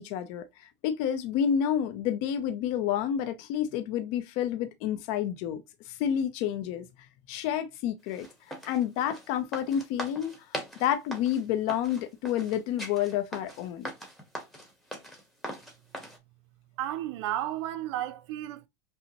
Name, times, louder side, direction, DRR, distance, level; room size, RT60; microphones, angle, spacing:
voice 1, 0.0-6.9 7.3-8.3 8.6-10.3 10.8-13.9, left 9 dB, 60° left, 0.6 m, -29 dB
sound 1, 8.1-16.2, equal, ahead, 1.2 m, -41 dB
voice 2, 16.8-18.7, right 13 dB, 75° right, 0.5 m, -33 dB
5.3 x 2.1 x 2.9 m
supercardioid pair, 135°, 15 cm